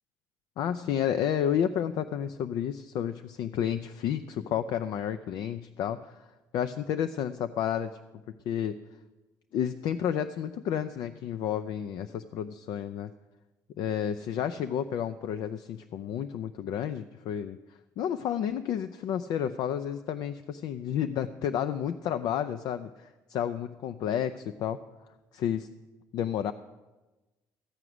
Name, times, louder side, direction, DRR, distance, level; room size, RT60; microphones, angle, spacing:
voice 1, 0.6-7.9 8.5-8.8 9.5-13.1 13.8-17.6 18.0-24.8 25.3-25.7 26.1-26.5, left 9 dB, 75° left, 10 dB, 0.4 m, -31 dB
14.5 x 4.9 x 9.4 m, 1.1 s
cardioid pair, 110°, 7 cm